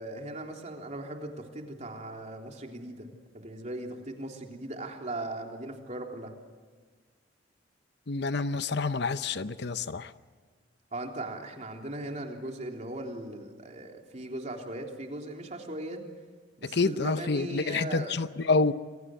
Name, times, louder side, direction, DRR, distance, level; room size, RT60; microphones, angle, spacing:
voice 1, 0.0-3.1 3.3-6.3 10.9-16.0 16.6-18.2, right 1 dB, 40° right, 2 dB, 3.5 m, -38 dB
voice 2, 8.1-10.1 16.7-18.7, left 4 dB, 60° left, 12 dB, 0.8 m, -28 dB
28.5 x 23.0 x 7.8 m, 1.5 s
head